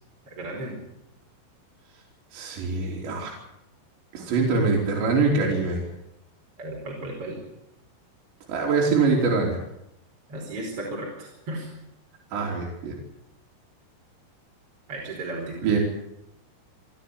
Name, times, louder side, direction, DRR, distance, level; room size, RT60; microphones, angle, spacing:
voice 1, 0.4-0.8 6.6-7.4 10.3-11.7 14.9-15.6, right 1 dB, 30° right, -1 dB, 5.3 m, -34 dB
voice 2, 2.3-3.3 4.1-5.8 8.5-9.6 12.3-13.0 15.6-15.8, right 4 dB, 60° right, -2 dB, 5.6 m, -23 dB
29.5 x 12.5 x 9.7 m, 0.84 s
omnidirectional pair, 5.8 m